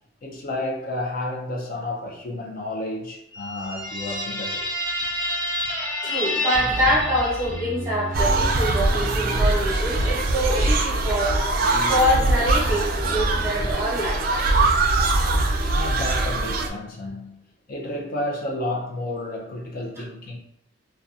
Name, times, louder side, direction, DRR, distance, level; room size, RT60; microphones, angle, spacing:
voice 1, 0.2-4.9 15.7-17.4 17.7-20.4, left 1 dB, 50° left, -2 dB, 0.5 m, -31 dB
sound 1, 3.3-8.0, left 1 dB, 25° left, 1.0 m, -29 dB
voice 2, 6.0-11.6 11.9-14.2, equal, 15° right, -8 dB, 0.9 m, -25 dB
Bass guitar, 6.5-10.1 10.7-11.3 11.6-13.7, right 1 dB, 85° left, 0.9 m, -33 dB
sound 2, 8.1-16.7, right 2 dB, 55° right, 0.3 m, -22 dB
2.6 x 2.1 x 2.4 m, 0.77 s
head